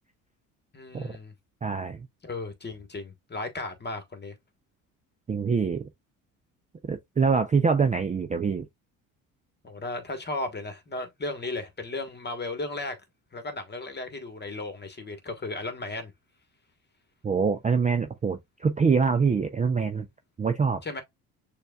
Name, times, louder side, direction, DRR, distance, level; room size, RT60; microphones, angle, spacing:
voice 1, 0.7-1.3 2.2-4.4 9.6-13.0 13.3-16.1 20.8-21.0, left 2 dB, 25° left, 1.3 m, -35 dB
voice 2, 1.6-2.1 5.3-5.9 6.9-8.6 17.2-20.1 20.4-20.8, right 5 dB, 20° right, 0.4 m, -25 dB
6.6 x 2.4 x 2.3 m
supercardioid pair, 70°, 40 cm